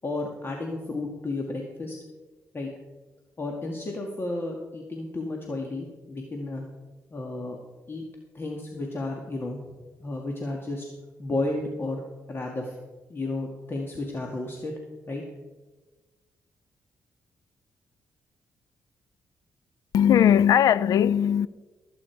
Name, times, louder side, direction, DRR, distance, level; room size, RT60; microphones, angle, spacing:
voice 1, 0.0-2.0 2.5-2.7 3.4-6.6 7.1-7.6 7.9-8.0 8.3-9.6 10.0-10.9 11.2-12.8 13.1-14.7 15.1-15.2, left 2 dB, 40° left, 1.9 m, -32 dB
voice 2, 19.9-21.5, left 9 dB, 75° left, 0.4 m, -19 dB
17.5 x 9.0 x 4.6 m
cardioid pair, 80°, 6 cm